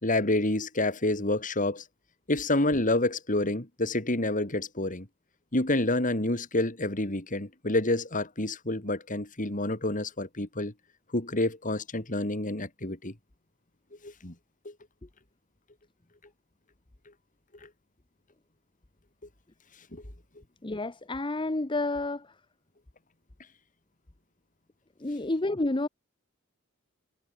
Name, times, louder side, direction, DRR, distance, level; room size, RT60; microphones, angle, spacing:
voice 1, 0.0-1.8 2.3-5.1 5.5-10.7 11.1-13.1 14.0-14.3 14.6-14.7 17.6-17.7 19.9-20.0, left 2 dB, 40° left, 3.4 m, -28 dB
voice 2, 20.6-22.3 25.0-25.9, left 2 dB, 25° left, 0.9 m, -30 dB
head